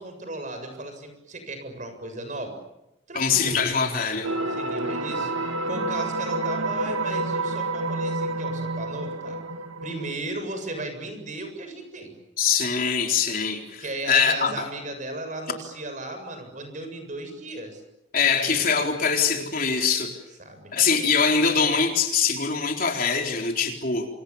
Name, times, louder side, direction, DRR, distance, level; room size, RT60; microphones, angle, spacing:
voice 1, 0.0-2.6 3.1-3.6 4.6-9.4 9.8-12.1 13.8-17.8 18.4-18.5 20.4-20.7, right 2 dB, 40° right, 7 dB, 7.4 m, -36 dB
voice 2, 3.1-4.3 12.4-14.6 18.1-20.1 20.7-24.1, left 6 dB, 45° left, 3 dB, 4.0 m, -23 dB
sound 1, 4.2-10.1, right 2 dB, 90° right, 2.3 m, -29 dB
29.5 x 26.5 x 7.3 m, 0.88 s
head